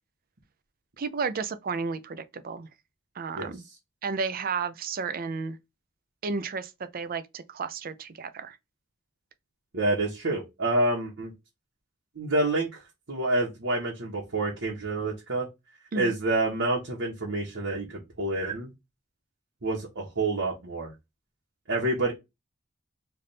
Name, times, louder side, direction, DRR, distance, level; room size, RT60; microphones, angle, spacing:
voice 1, 1.0-2.7 3.2-3.6 4.0-5.6 6.2-8.6 15.9-16.1, right 4 dB, 50° right, 0.5 m, -32 dB
voice 2, 9.7-11.3 12.1-12.8 13.1-15.5 15.9-18.7 19.6-20.9 21.7-22.1, right 2 dB, 75° right, 1.2 m, -28 dB
3.3 x 2.6 x 4.1 m
head